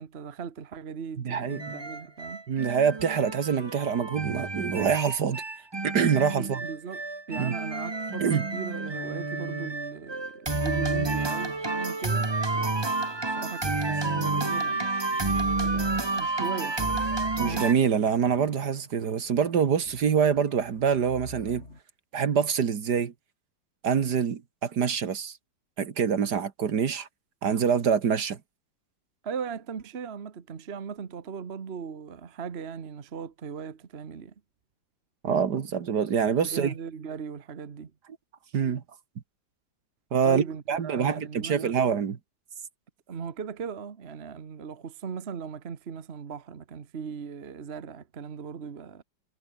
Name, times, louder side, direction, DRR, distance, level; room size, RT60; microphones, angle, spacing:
voice 1, 0.0-2.4 6.4-17.1 29.2-34.3 36.4-37.9 40.2-41.8 43.1-49.0, right 6 dB, 35° right, 1.3 m, -38 dB
voice 2, 1.2-1.6 2.5-5.4 5.8-6.6 7.4-7.5 8.2-8.5 17.4-21.6 22.1-23.1 23.8-25.4 25.8-27.1 27.4-28.4 35.2-36.7 38.5-38.8 40.1-42.2, right 7 dB, 60° right, 2.1 m, -25 dB
sound 1, 1.5-17.7, right 3 dB, 15° right, 1.0 m, -30 dB
sound 2, 15.2-15.3 15.6-15.7 16.0-21.8, left 2 dB, 35° left, 4.7 m, -51 dB
omnidirectional pair, 2.0 m